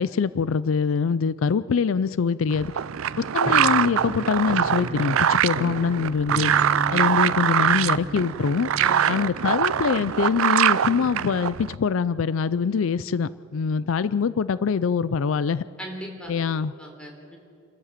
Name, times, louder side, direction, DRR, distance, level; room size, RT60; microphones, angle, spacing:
voice 1, 0.0-2.7 3.2-6.5 6.9-8.7 9.1-15.6 16.3-16.7, left 6 dB, 75° left, 17 dB, 0.4 m, -24 dB
sound 1, 2.5-11.7, right 9 dB, 90° right, 0.5 m, -23 dB
Piano, 3.4-10.2, right 1 dB, 30° right, 0.8 m, -36 dB
voice 2, 7.0-7.5 8.8-9.2 15.8-16.3 16.8-17.4, equal, 5° left, 1 dB, 3.6 m, -38 dB
sound 2, 10.0-11.3, left 2 dB, 45° left, 2.7 m, -50 dB
28.0 x 13.5 x 7.5 m, 2.5 s
head